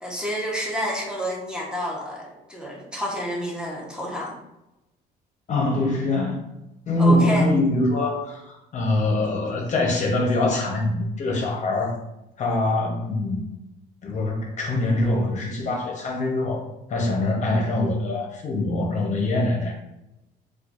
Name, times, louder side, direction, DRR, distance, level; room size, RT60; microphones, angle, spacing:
voice 1, 0.0-4.4 7.0-7.5, equal, 5° right, -3 dB, 0.9 m, -29 dB
voice 2, 5.5-6.4 6.9-12.0 12.4-13.4 14.0-16.6 16.9-19.7, left 2 dB, 45° left, 0 dB, 0.8 m, -23 dB
4.3 x 2.3 x 2.4 m, 0.92 s
cardioid pair, 110°, 17 cm